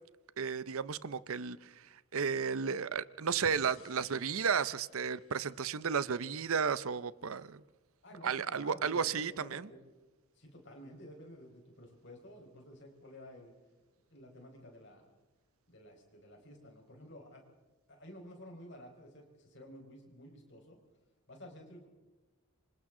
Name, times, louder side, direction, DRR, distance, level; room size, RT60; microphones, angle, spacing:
voice 1, 0.4-7.6 8.2-9.7, right 6 dB, 70° right, 17 dB, 0.7 m, -33 dB
sound 1, 3.4-6.6, left 2 dB, 70° left, 3.4 m, -60 dB
voice 2, 8.0-9.8 10.3-13.5 14.1-15.1 15.7-17.4 17.9-20.8 21.3-21.9, equal, 55° left, 2 dB, 4.8 m, -52 dB
27.5 x 25.0 x 3.8 m, 1.2 s
head